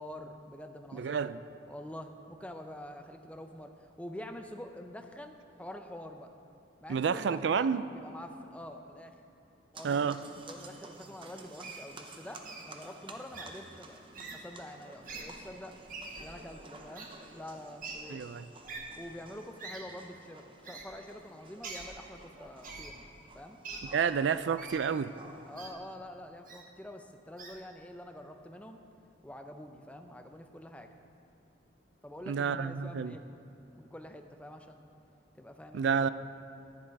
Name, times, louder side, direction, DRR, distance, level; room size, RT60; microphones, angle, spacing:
voice 1, 0.0-1.3 1.7-6.3 6.8-9.1 9.7-14.0 14.3-15.8 16.2-18.2 19.0-23.1 23.3-23.6 25.5-28.8 29.2-30.9 32.0-33.2 33.8-34.8 35.4-36.0, left 1 dB, 5° left, 5 dB, 0.5 m, -46 dB
voice 2, 0.9-1.4 6.9-7.8 9.8-10.2 18.1-18.4 23.9-25.1 32.3-33.1 35.7-36.1, right 6 dB, 70° right, 14 dB, 0.4 m, -29 dB
sound 1, 9.7-25.8, right 2 dB, 25° right, 0.7 m, -52 dB
Wild animals, 11.6-11.8 12.5-12.6 13.3-13.5 14.1-14.4 15.0-15.2 15.9-16.3 17.0-17.1 17.8-18.0 18.7-18.8 19.6-19.8 20.6-20.8 21.6-21.9 22.6-22.9 23.6-23.8 24.6-24.8 25.6-25.7 26.5-26.6 27.4-27.6, right 4 dB, 45° right, 1.3 m, -43 dB
10.5 x 10.0 x 4.7 m, 2.9 s
head